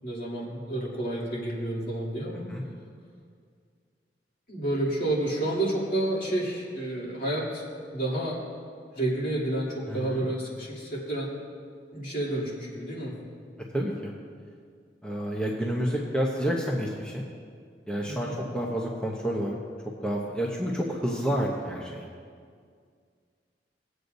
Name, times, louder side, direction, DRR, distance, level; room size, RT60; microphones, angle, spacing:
voice 1, 0.0-2.5 4.5-8.4 8.9-11.3 11.9-13.1 18.1-18.4, right 1 dB, 50° left, -6 dB, 2.8 m, -30 dB
voice 2, 9.9-10.3 13.7-14.1 15.0-17.2 17.9-19.6 20.0-22.1, equal, 5° left, -3 dB, 0.8 m, -29 dB
19.5 x 8.0 x 2.6 m, 2.1 s
head